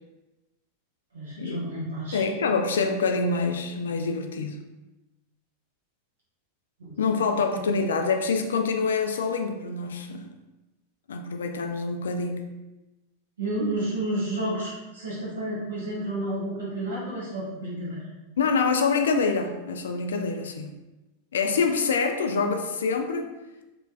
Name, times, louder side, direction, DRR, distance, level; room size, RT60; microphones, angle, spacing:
voice 1, 1.1-2.2 6.8-7.0 7.5-7.6 13.4-18.1, right 1 dB, 70° right, -7 dB, 0.8 m, -31 dB
voice 2, 2.1-4.6 7.0-10.3 11.1-12.5 18.4-20.7 21.3-23.3, left 4 dB, 65° left, 5 dB, 0.3 m, -26 dB
3.2 x 3.0 x 2.3 m, 1.1 s
figure-of-eight pair, 90°, 0 cm